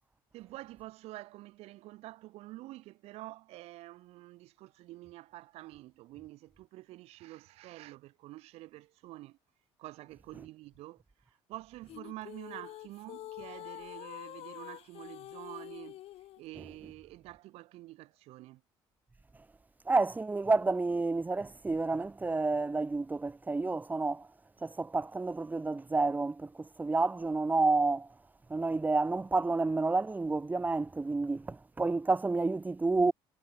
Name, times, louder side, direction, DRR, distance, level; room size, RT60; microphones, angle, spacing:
voice 1, 0.3-9.4 9.8-16.0 16.4-18.6, right 18 dB, 70° right, 2.1 m, -48 dB
sound 1, 11.9-16.4, left 14 dB, 65° left, 4.8 m, -46 dB
voice 2, 19.9-24.3 24.6-28.1 28.5-33.1, right 3 dB, 15° right, 0.9 m, -30 dB
supercardioid pair, 85°, 11 cm